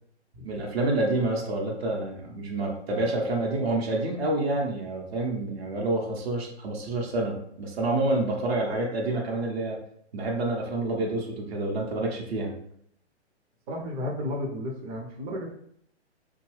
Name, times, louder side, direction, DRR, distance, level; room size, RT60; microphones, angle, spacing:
voice 1, 0.4-9.8 10.1-12.6, right 2 dB, 60° right, 0 dB, 0.9 m, -28 dB
voice 2, 13.7-15.5, left 1 dB, 30° right, 0 dB, 0.6 m, -33 dB
2.7 x 2.3 x 3.1 m, 0.68 s
figure-of-eight pair, 125°, 35 cm